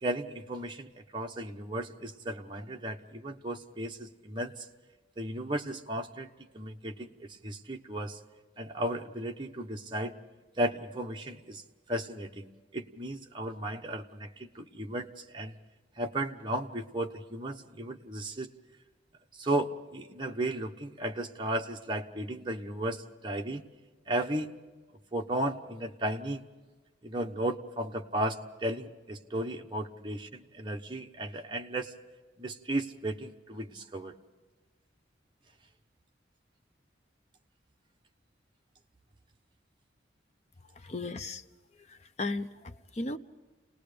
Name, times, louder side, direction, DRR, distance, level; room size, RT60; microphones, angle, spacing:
voice 1, 0.0-4.7 5.2-6.3 6.5-7.1 7.4-8.2 8.6-10.2 10.6-11.6 11.9-15.5 16.0-18.5 19.4-23.6 24.1-24.5 25.1-26.4 27.0-31.9 32.4-34.1, right 1 dB, 25° right, 2 dB, 1.1 m, -35 dB
voice 2, 40.8-41.4 42.2-43.2, left 2 dB, 35° left, 10 dB, 0.6 m, -35 dB
29.5 x 19.5 x 5.2 m, 1.2 s
head